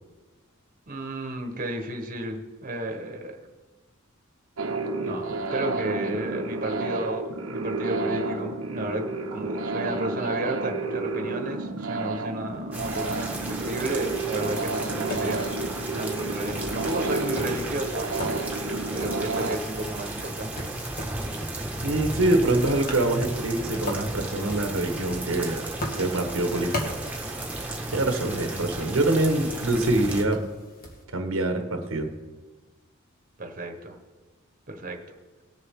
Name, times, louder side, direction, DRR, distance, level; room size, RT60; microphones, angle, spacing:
voice 1, 0.9-3.3 5.0-15.5 16.0-18.1 18.9-20.8 33.4-34.0 34.7-35.0, right 1 dB, 40° right, 3 dB, 1.3 m, -33 dB
sound 1, 4.6-19.6, right 3 dB, 90° right, 1.1 m, -30 dB
sound 2, 12.7-30.2, right 2 dB, 5° right, 1.6 m, -34 dB
Tap, 14.3-31.0, left 1 dB, 45° left, 1.7 m, -40 dB
voice 2, 21.8-25.7 26.0-26.8 27.9-30.4 31.1-32.1, right 2 dB, 70° right, 5 dB, 1.2 m, -25 dB
19.0 x 7.1 x 3.7 m, 1.3 s
head